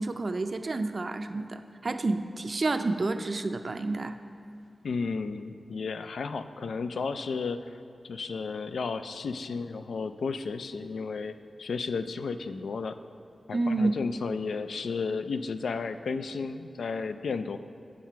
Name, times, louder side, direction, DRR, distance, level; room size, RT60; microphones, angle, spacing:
voice 1, 0.0-4.2 13.5-13.9, right 2 dB, 40° right, 9 dB, 0.4 m, -29 dB
voice 2, 4.8-7.8 8.0-11.3 11.6-13.0 13.5-17.6, left 4 dB, 90° left, 10 dB, 0.3 m, -33 dB
7.5 x 7.4 x 5.7 m, 2.4 s
wide cardioid pair, 125°, 0 cm